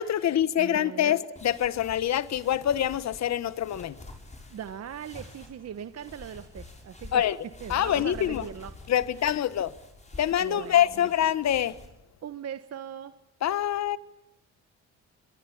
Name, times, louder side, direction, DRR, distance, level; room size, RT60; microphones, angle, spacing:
voice 1, 0.0-4.0 7.1-7.4 7.7-8.4 8.9-9.7 10.2-11.8 13.4-14.0, left 10 dB, 60° left, 1.3 m, -25 dB
voice 2, 0.6-1.2 4.5-7.2 7.6-8.7 10.4-10.9 12.2-13.1, right 9 dB, 55° right, 1.3 m, -39 dB
sound 1, 1.4-11.9, left 2 dB, 25° left, 7.1 m, -48 dB
26.5 x 22.5 x 8.7 m
cardioid pair, 90°, 30 cm